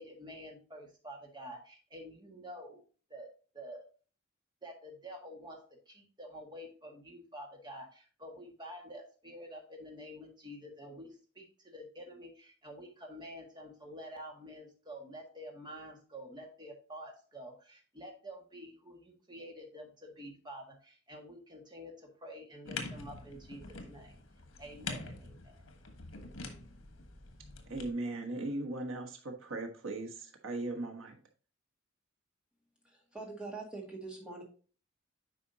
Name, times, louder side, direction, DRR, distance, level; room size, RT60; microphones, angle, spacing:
voice 1, 0.0-2.8 3.1-3.3 3.5-3.8 4.6-5.6 5.9-24.2 24.6-25.7, equal, 20° right, 1 dB, 1.7 m, -48 dB
sound 1, 22.6-27.9, left 3 dB, 80° left, 1.3 m, -45 dB
voice 2, 27.7-31.2, right 2 dB, 85° right, 2 dB, 1.3 m, -38 dB
voice 3, 32.8-34.4, right 3 dB, 5° right, -2 dB, 1.9 m, -44 dB
9.1 x 5.2 x 2.7 m, 0.38 s
head